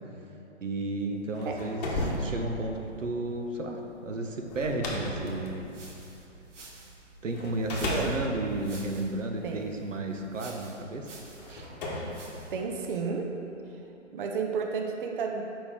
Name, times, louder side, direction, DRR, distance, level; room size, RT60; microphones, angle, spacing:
voice 1, 0.6-5.7 7.2-11.2 11.5-11.7, right 2 dB, 90° right, 3 dB, 0.8 m, -33 dB
sound 1, 1.1-6.7 7.3-9.8 10.6-10.7 11.4-13.1, left 1 dB, 35° left, 1.1 m, -36 dB
sound 2, 5.3-12.7, right 3 dB, 75° right, 1.2 m, -51 dB
voice 2, 7.9-8.2 9.4-9.8 12.5-13.3 14.1-15.4, right 5 dB, 45° right, 2 dB, 0.6 m, -32 dB
6.9 x 5.2 x 3.6 m, 3.0 s
hypercardioid pair, 140°, 37 cm